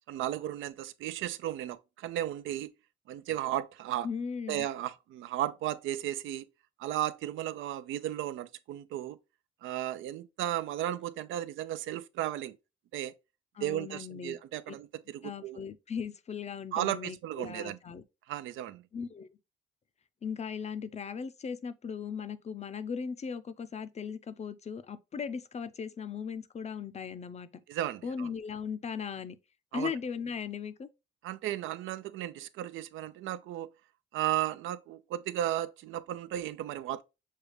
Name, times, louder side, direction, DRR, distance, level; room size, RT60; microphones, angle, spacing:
voice 1, 0.1-2.7 3.1-4.1 4.5-6.5 6.8-9.2 9.6-12.6 12.9-13.1 13.6-15.6 16.7-17.8 18.3-18.8 27.7-28.3 29.7-29.9 31.2-33.7 34.1-37.0, right 12 dB, 80° right, 0.4 m, -34 dB
voice 2, 4.0-4.7 13.6-14.4 15.2-18.0 18.9-19.4 20.2-27.5 28.0-29.3 29.7-30.9, left 6 dB, 35° left, 0.5 m, -38 dB
6.4 x 2.3 x 3.2 m
cardioid pair, 90°, 20 cm